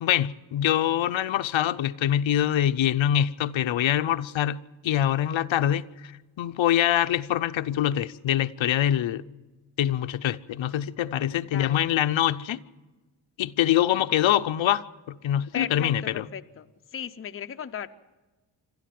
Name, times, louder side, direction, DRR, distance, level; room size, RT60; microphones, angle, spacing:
voice 1, 0.0-4.6 4.8-5.8 6.4-9.2 9.8-12.6 13.4-16.2, left 11 dB, 80° left, 0.7 m, -24 dB
voice 2, 11.4-11.8 15.5-16.7 16.9-17.9, left 9 dB, 30° left, 0.5 m, -35 dB
26.5 x 13.0 x 7.5 m
wide cardioid pair, 175°, 46 cm